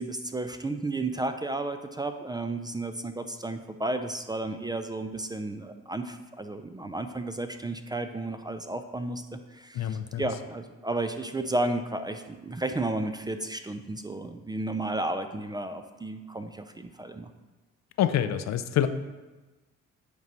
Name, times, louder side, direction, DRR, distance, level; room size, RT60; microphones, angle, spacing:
voice 1, 0.0-17.3, right 2 dB, 15° right, 8 dB, 0.4 m, -33 dB
voice 2, 9.7-10.3 18.0-18.9, left 10 dB, 65° left, 11 dB, 0.5 m, -26 dB
8.1 x 3.1 x 5.2 m, 1.2 s
cardioid pair, 90°, 30 cm